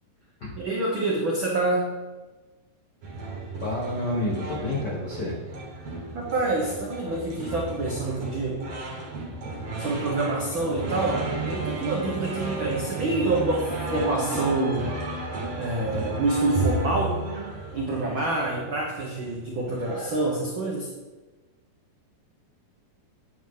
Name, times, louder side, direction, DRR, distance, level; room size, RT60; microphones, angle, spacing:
voice 1, 0.5-2.0 6.1-8.7 9.8-14.9 15.6-17.2 17.7-20.9, right 2 dB, 75° right, -3 dB, 1.1 m, -27 dB
sound 1, 3.0-20.4, right 3 dB, 50° right, 2.1 m, -33 dB
voice 2, 3.6-5.3, left 1 dB, 80° left, -4 dB, 0.9 m, -29 dB
9.0 x 8.5 x 3.8 m, 1.2 s
omnidirectional pair, 4.1 m